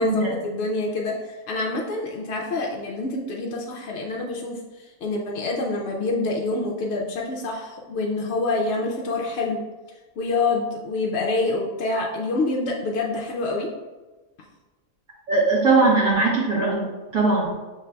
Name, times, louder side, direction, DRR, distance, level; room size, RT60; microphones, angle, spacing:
voice 1, 0.0-9.6 10.2-13.7, left 3 dB, 65° left, -1 dB, 0.7 m, -26 dB
voice 2, 15.3-16.9 17.1-17.6, right 3 dB, 75° right, -7 dB, 1.3 m, -20 dB
6.1 x 3.2 x 2.2 m, 1.2 s
omnidirectional pair, 1.5 m